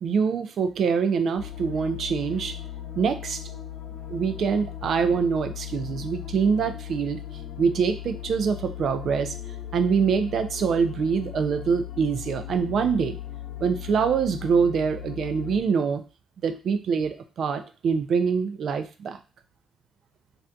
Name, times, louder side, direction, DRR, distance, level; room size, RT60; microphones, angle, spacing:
voice 1, 0.0-2.5 3.0-3.4 4.1-7.2 7.6-9.3 9.7-13.2 13.6-16.0 16.4-19.2, right 6 dB, 60° right, 9 dB, 0.4 m, -24 dB
sound 1, 1.4-15.6, left 11 dB, 80° left, 0.6 m, -38 dB
2.6 x 2.4 x 3.3 m, 0.33 s
cardioid pair, 90°, 0 cm